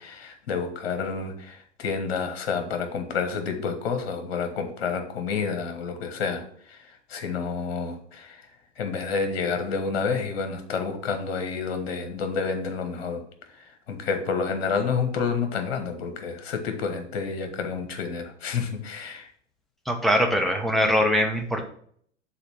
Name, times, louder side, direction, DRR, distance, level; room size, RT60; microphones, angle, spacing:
voice 1, 0.0-6.4 6.7-8.4 8.8-13.2 13.5-19.3, left 5 dB, 55° left, 6 dB, 1.4 m, -29 dB
voice 2, 19.9-21.7, equal, ahead, 2 dB, 0.6 m, -22 dB
5.7 x 4.1 x 5.8 m, 0.62 s
figure-of-eight pair, 95°, 38 cm